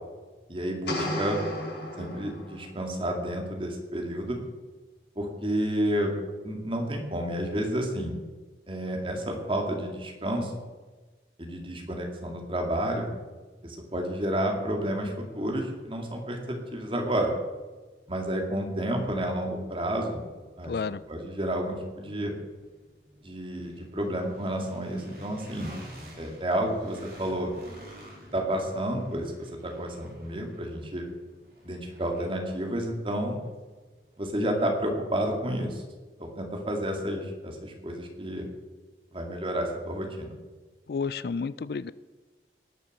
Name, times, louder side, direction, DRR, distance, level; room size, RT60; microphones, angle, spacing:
voice 1, 0.5-1.4 2.0-4.4 5.2-6.1 6.4-8.1 8.7-10.5 11.4-13.1 13.6-17.3 18.1-20.2 20.6-20.7 21.1-22.4 23.2-25.7 26.2-27.5 28.3-31.1 31.6-33.4 34.2-35.8 36.2-38.5 39.1-40.3, right 1 dB, 30° right, 2 dB, 2.3 m, -30 dB
sound 1, 0.9-2.8, left 1 dB, 80° left, 5.5 m, -33 dB
sound 2, 18.0-18.1 18.6-34.5, equal, 60° right, 4.2 m, -50 dB
voice 2, 20.6-21.0 40.9-41.9, left 5 dB, 60° left, 17 dB, 0.4 m, -31 dB
19.0 x 6.9 x 6.6 m, 1.3 s
head